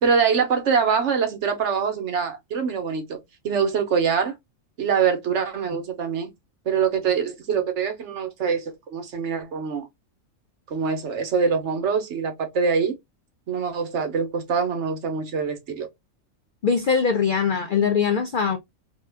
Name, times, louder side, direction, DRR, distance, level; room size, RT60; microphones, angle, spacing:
voice 1, 0.0-4.3 4.8-6.3 6.7-9.8 10.7-12.9 13.5-15.9, right 6 dB, 65° right, 1.0 m, -24 dB
voice 2, 16.6-18.6, left 6 dB, 65° left, 0.5 m, -21 dB
2.7 x 2.3 x 3.3 m
omnidirectional pair, 1.4 m